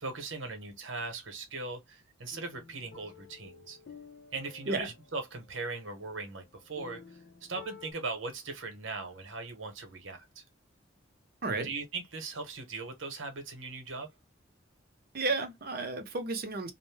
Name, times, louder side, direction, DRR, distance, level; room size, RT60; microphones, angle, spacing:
voice 1, 0.0-3.8 4.3-10.4 11.6-14.1, right 3 dB, 80° right, 1.0 m, -39 dB
sound 1, 2.3-7.9, left 6 dB, 70° left, 0.6 m, -53 dB
voice 2, 15.1-16.7, right 3 dB, 50° right, 0.7 m, -32 dB
2.6 x 2.1 x 3.3 m
head